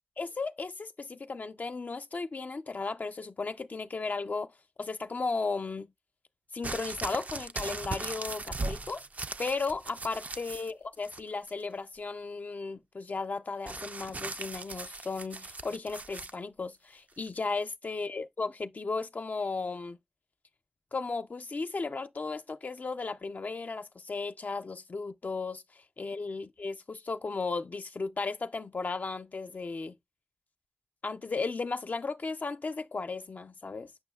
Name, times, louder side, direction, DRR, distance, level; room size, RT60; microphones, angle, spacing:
voice 1, 0.2-4.5 4.8-5.9 6.5-9.0 9.4-20.0 20.9-30.0 31.0-33.9, left 4 dB, 80° left, 0.5 m, -35 dB
sound 1, 6.6-10.7 11.0-11.6 13.7-16.4 17.2-17.3, right 3 dB, 65° right, 0.4 m, -39 dB
7.4 x 5.5 x 2.3 m
cardioid pair, 40°, 3 cm